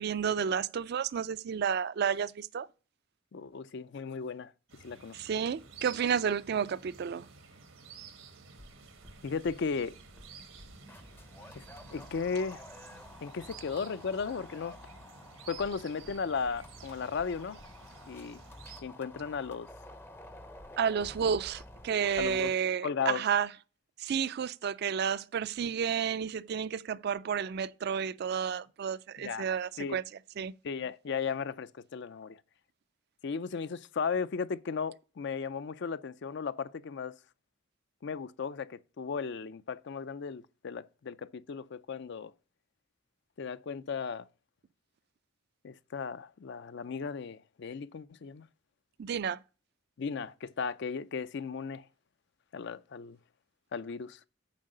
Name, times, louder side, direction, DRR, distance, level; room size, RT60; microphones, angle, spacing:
voice 1, 0.0-2.7 5.1-7.3 20.8-23.5 24.0-30.0 30.4-30.5 49.0-49.4, right 7 dB, 55° right, 0.4 m, -31 dB
voice 2, 3.3-4.5 4.8-5.2 9.2-10.0 11.5-11.6 11.9-12.6 13.2-14.8 15.5-17.6 18.1-18.4 18.8-19.7 22.2-22.5 22.8-23.2 29.2-29.5 29.8-30.0 30.6-32.4 33.2-37.1 38.0-42.3 43.4-44.3 45.6-48.5 50.0-51.9 52.5-53.2 53.7-54.2, left 5 dB, 60° left, 0.4 m, -35 dB
sound 1, 4.7-18.8, right 5 dB, 90° right, 1.3 m, -53 dB
sound 2, 8.5-22.5, left 1 dB, 10° left, 0.5 m, -51 dB
7.4 x 4.8 x 6.5 m
head